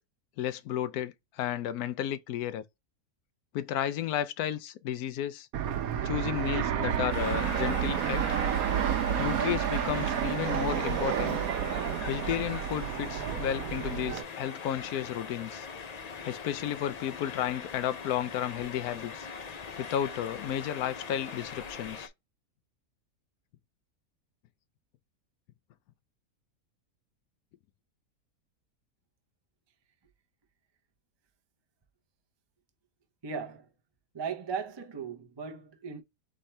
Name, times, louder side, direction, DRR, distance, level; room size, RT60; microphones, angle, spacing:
voice 1, 0.4-2.6 3.5-5.5 6.0-8.2 9.2-11.4 12.1-15.7 16.3-19.3 19.8-22.1, left 11 dB, 80° left, 1.1 m, -33 dB
Fixed-wing aircraft airplane, 5.5-14.2, right 9 dB, 75° right, 1.1 m, -30 dB
sound 1, 7.1-22.1, left 5 dB, 65° left, 0.4 m, -41 dB
voice 2, 33.2-33.7 34.1-36.0, right 6 dB, 35° right, 0.4 m, -37 dB
4.3 x 3.6 x 3.2 m
omnidirectional pair, 1.6 m